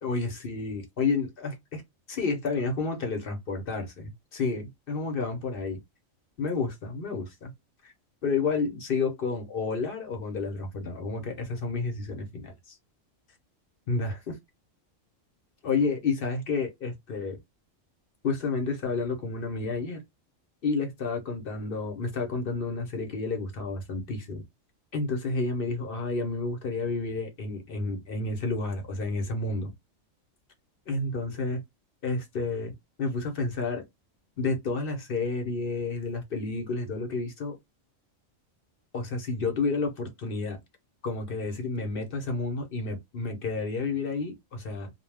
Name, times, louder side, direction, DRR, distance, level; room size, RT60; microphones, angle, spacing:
voice 1, 0.0-1.8 2.1-5.8 6.4-7.5 7.8-7.9 8.2-12.5 13.9-14.4 15.6-17.4 18.2-20.0 20.6-24.4 24.9-29.7 30.9-31.6 32.0-32.7 33.0-33.8 34.4-37.6 38.9-40.6 41.0-44.9, left 3 dB, 50° left, 0.8 m, -30 dB
2.3 x 2.2 x 3.3 m
omnidirectional pair, 1.4 m